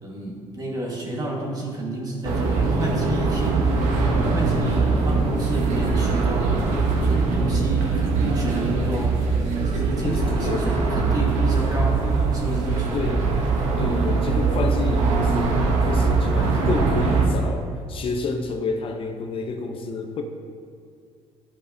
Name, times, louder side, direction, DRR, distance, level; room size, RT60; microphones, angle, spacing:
voice 1, 0.0-6.6 7.0-9.2 9.6-13.1, right 1 dB, 30° right, -2 dB, 1.6 m, -30 dB
sound 1, 2.3-17.3, right 4 dB, 80° right, 1.0 m, -22 dB
voice 2, 10.0-10.7 12.9-13.3 13.8-20.2, left 4 dB, 45° left, 4 dB, 0.6 m, -29 dB
11.5 x 5.0 x 2.8 m, 2.1 s
cardioid pair, 105°, 12 cm